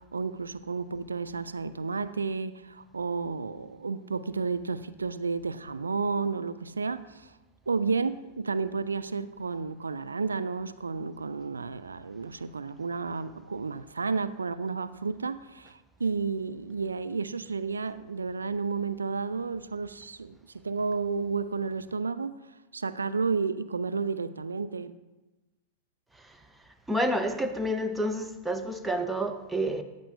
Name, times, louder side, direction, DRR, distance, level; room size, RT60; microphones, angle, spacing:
voice 1, 0.0-7.3 7.7-22.4 22.7-24.9, right 4 dB, 75° right, 0.4 m, -32 dB
voice 2, 26.9-29.8, equal, 5° right, 0.8 m, -29 dB
14.5 x 9.4 x 2.4 m
figure-of-eight pair, 90°, 0 cm